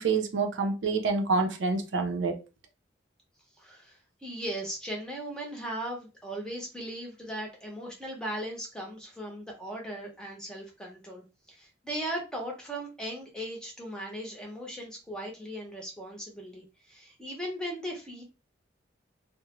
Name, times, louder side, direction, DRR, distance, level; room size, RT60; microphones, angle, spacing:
voice 1, 0.0-2.3, right 4 dB, 80° right, 0.5 m, -27 dB
voice 2, 3.6-18.2, right 1 dB, 5° left, 0.6 m, -38 dB
2.4 x 2.0 x 2.9 m
head